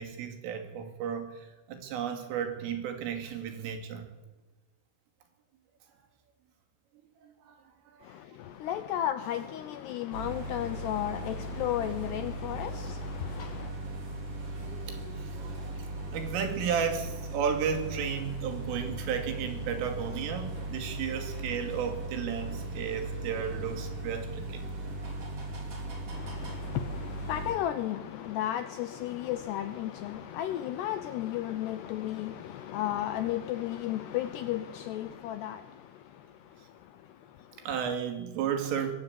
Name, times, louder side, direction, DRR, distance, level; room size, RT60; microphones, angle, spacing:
voice 1, 0.0-4.1 7.2-7.6 7.9-8.1 14.9-15.5 16.1-24.6 37.6-39.0, right 7 dB, 75° right, 5.1 m, -33 dB
voice 2, 8.0-13.7 26.1-37.7, left 12 dB, 80° left, 2.4 m, -34 dB
sound 1, 10.1-27.6, right 1 dB, 30° right, 4.2 m, -38 dB
22.5 x 15.0 x 8.3 m
omnidirectional pair, 5.8 m